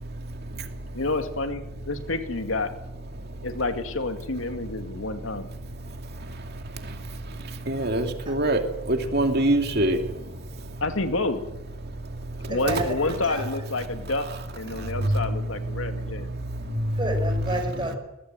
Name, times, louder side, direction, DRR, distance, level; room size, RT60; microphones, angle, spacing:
voice 1, 0.0-1.0 3.2-3.5 5.8-10.8 11.8-12.5 14.7-17.0, right 1 dB, 55° right, 5 dB, 2.6 m, -28 dB
voice 2, 0.9-2.7 3.4-5.5 10.8-11.5 12.5-16.3, left 2 dB, 90° left, 7 dB, 2.4 m, -29 dB
voice 3, 12.5-13.5 16.9-18.0, right 1 dB, 25° right, 4 dB, 6.1 m, -30 dB
22.0 x 19.0 x 9.2 m, 0.93 s
head